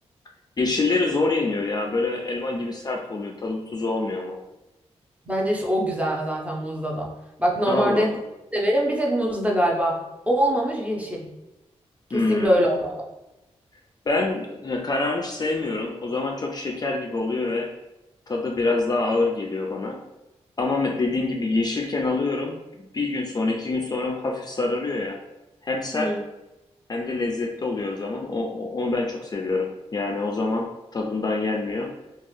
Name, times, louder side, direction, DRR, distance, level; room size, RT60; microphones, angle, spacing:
voice 1, 0.6-4.4 7.7-8.2 12.1-12.5 14.1-17.7 18.3-20.0 20.6-25.2 25.6-26.1 26.9-31.9, left 3 dB, 35° left, 1 dB, 0.4 m, -26 dB
voice 2, 5.2-7.1 7.4-8.1 8.5-10.0 10.3-11.3 12.1-13.0 25.9-26.2, equal, 10° right, -2 dB, 0.7 m, -23 dB
2.4 x 2.4 x 3.2 m, 0.98 s
cardioid pair, 55°, 12 cm